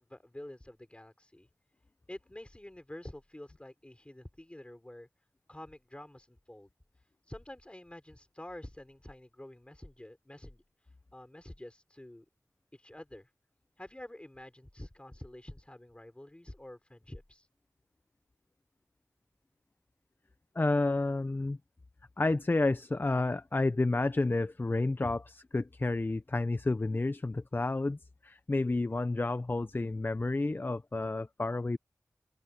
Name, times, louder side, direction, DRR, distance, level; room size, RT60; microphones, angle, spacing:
voice 1, 0.0-1.5 2.1-5.1 5.5-6.7 7.3-10.6 11.1-12.3 12.7-13.3 13.8-17.5, left 1 dB, 20° left, 6.0 m, -48 dB
voice 2, 20.6-21.6 22.2-31.8, left 2 dB, 35° left, 0.6 m, -30 dB
wide cardioid pair, 55°, 6 cm